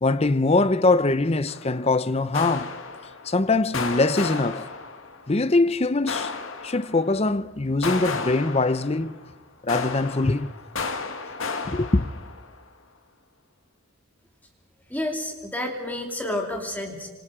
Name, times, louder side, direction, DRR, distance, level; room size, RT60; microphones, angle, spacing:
voice 1, 0.0-2.7 3.2-4.7 5.3-6.3 6.6-9.2 9.6-10.5 11.6-12.1, left 2 dB, 30° left, 0.7 m, -22 dB
sound 1, 1.5-1.9 2.3-3.4 3.7-5.3 6.1-7.2 7.8-9.3 9.7-12.6, left 4 dB, 70° left, 2.2 m, -33 dB
voice 2, 14.9-17.1, left 1 dB, 10° left, 2.9 m, -30 dB
27.5 x 26.0 x 5.0 m
head